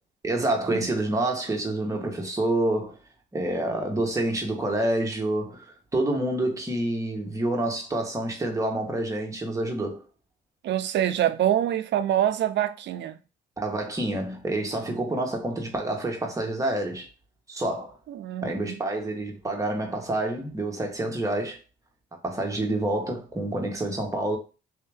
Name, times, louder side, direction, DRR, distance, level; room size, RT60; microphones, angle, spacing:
voice 1, 0.2-3.0 3.3-10.0 13.6-17.1 17.5-18.0 18.4-21.6 22.2-24.4, right 1 dB, 15° right, 1.2 m, -28 dB
voice 2, 10.6-13.1 18.1-18.8, right 11 dB, 65° right, 0.5 m, -25 dB
3.5 x 2.8 x 3.4 m
cardioid pair, 90°, 20 cm